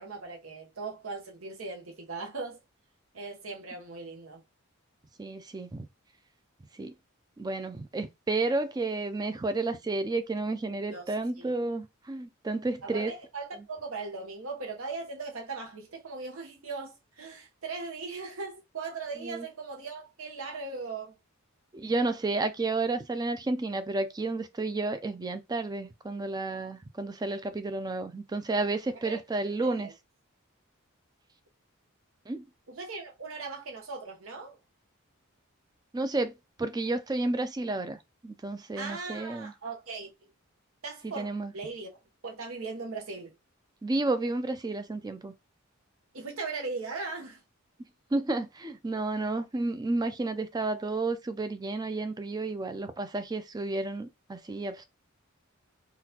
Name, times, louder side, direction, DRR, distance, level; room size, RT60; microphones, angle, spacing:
voice 1, 0.0-2.6 3.1-4.4 10.9-11.0 11.4-11.5 12.8-21.2 29.0-29.2 29.6-29.9 32.7-34.6 38.8-40.1 40.8-42.0 42.2-43.3 46.1-47.4, right 4 dB, 70° right, 1.0 m, -39 dB
voice 2, 5.2-5.9 6.8-6.9 7.4-13.1 19.2-19.5 21.7-29.9 32.3-32.4 35.9-38.0 38.2-39.5 41.0-41.5 43.8-45.3 48.1-54.8, right 2 dB, 20° right, 0.4 m, -31 dB
3.8 x 2.4 x 2.8 m
head